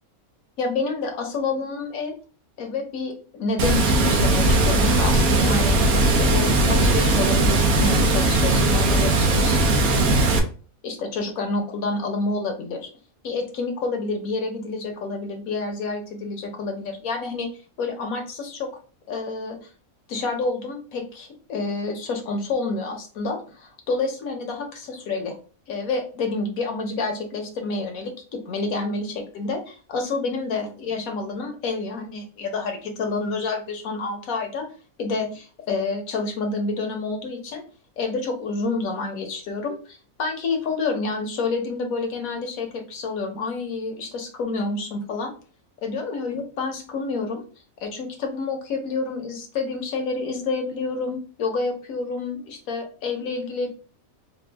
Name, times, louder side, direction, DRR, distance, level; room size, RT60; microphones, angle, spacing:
voice 1, 0.6-2.1 2.6-9.6 10.8-12.9 13.2-17.5 17.8-18.7 19.1-19.6 20.1-25.3 25.7-34.7 35.0-37.6 38.0-45.3 45.8-47.4 47.8-53.7, left 3 dB, 75° left, 4 dB, 1.3 m, -28 dB
Water, 3.6-10.4, right 2 dB, 90° right, 1.2 m, -19 dB
4.3 x 2.4 x 3.3 m, 0.39 s
omnidirectional pair, 1.5 m